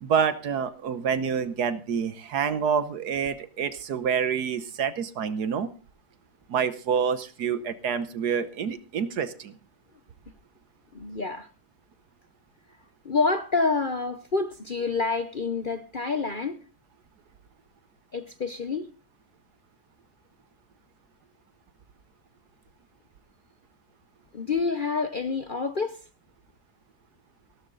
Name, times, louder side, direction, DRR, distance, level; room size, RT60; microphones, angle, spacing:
voice 1, 0.0-5.7 6.5-9.6, right 7 dB, 60° right, 1.4 m, -27 dB
voice 2, 10.9-11.5 13.0-16.6 18.1-18.9 24.3-26.0, left 4 dB, 55° left, 0.5 m, -28 dB
16.5 x 12.5 x 3.9 m
omnidirectional pair, 2.1 m